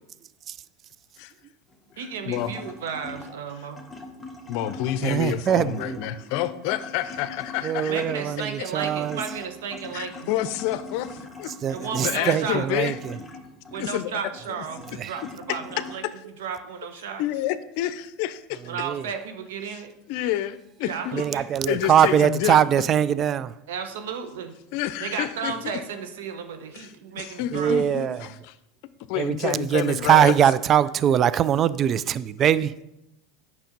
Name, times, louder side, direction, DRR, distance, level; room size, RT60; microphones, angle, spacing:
sound 1, 1.7-16.0, left 2 dB, 5° left, 1.4 m, -42 dB
voice 1, 2.0-3.8 7.9-10.3 11.7-12.7 13.7-17.2 18.6-19.9 20.8-21.4 23.7-24.5 25.0-27.8, right 6 dB, 85° right, 1.1 m, -34 dB
voice 2, 4.5-8.0 8.4-8.7 9.9-11.5 12.0-12.9 13.8-14.1 15.5-15.6 17.2-18.6 20.1-21.1 21.7-22.6 24.7-25.5 26.7-26.9 27.1-28.5 29.1-30.3, left 13 dB, 65° left, 0.6 m, -28 dB
voice 3, 5.0-6.0 7.6-9.2 11.6-13.2 15.0-15.1 18.8-19.0 21.1-23.5 27.5-28.2 29.2-32.7, right 9 dB, 40° right, 0.3 m, -22 dB
8.9 x 6.1 x 5.2 m
supercardioid pair, 105°, 0 cm